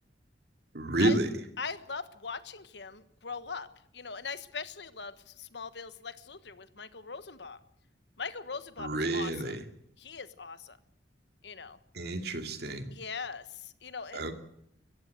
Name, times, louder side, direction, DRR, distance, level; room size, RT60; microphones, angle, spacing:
voice 1, 0.7-1.3 8.8-9.6 11.9-12.9 14.1-14.3, right 2 dB, 65° right, 6 dB, 2.5 m, -30 dB
voice 2, 1.6-3.7 3.9-7.6 8.2-9.5 10.0-10.8 11.4-11.8 12.9-14.3, left 5 dB, 75° left, 13 dB, 1.4 m, -40 dB
22.5 x 15.0 x 7.9 m, 0.73 s
head